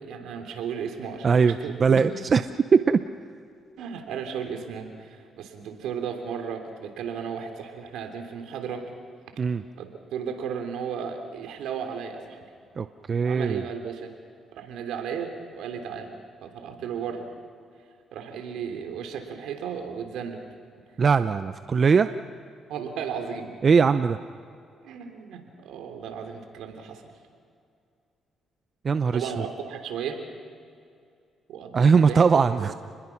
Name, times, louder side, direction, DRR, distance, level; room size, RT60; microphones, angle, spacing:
voice 1, 0.0-2.0 3.8-8.8 9.8-12.4 13.2-14.1 14.5-16.1 16.4-17.3 18.1-20.4 22.7-23.5 24.8-27.0 29.1-30.2 31.5-32.4, right 7 dB, 85° right, 5 dB, 3.2 m, -34 dB
voice 2, 1.2-2.4 2.7-3.0 9.4-9.6 12.8-13.6 21.0-22.1 23.6-24.2 28.8-29.4 31.7-32.7, right 5 dB, 45° right, 10 dB, 0.7 m, -20 dB
30.0 x 21.0 x 6.0 m, 2.4 s
cardioid pair, 90°, 0 cm